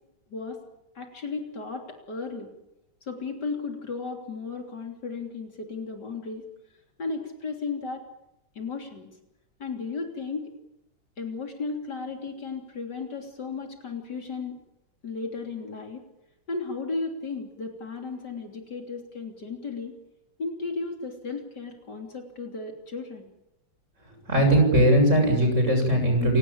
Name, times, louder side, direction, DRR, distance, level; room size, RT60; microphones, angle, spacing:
voice 1, 0.3-0.6 1.0-2.5 3.1-6.5 7.0-8.1 8.6-9.1 9.6-10.5 11.2-14.6 15.0-16.0 16.5-19.9 20.4-23.3, left 4 dB, 60° left, 3 dB, 3.8 m, -34 dB
voice 2, 24.3-26.4, right 1 dB, 40° right, 4 dB, 7.5 m, -19 dB
28.5 x 17.5 x 8.8 m, 0.90 s
omnidirectional pair, 2.0 m